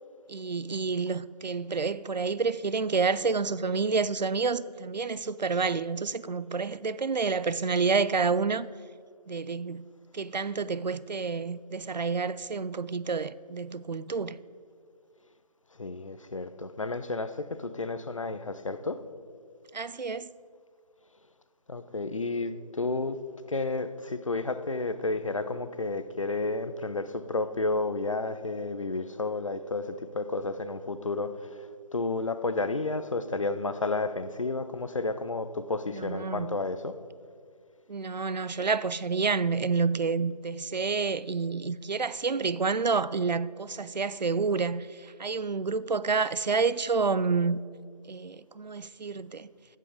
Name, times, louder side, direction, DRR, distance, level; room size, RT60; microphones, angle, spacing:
voice 1, 0.3-8.7 9.3-9.9 10.1-14.4 19.7-20.3 35.9-36.6 37.9-47.6 48.1-49.5, right 4 dB, 85° right, 0.5 m, -29 dB
voice 2, 15.8-19.0 21.7-23.2 23.5-31.7 31.9-36.9, left 3 dB, 50° left, 0.6 m, -31 dB
15.0 x 5.6 x 5.0 m
figure-of-eight pair, 160°, 21 cm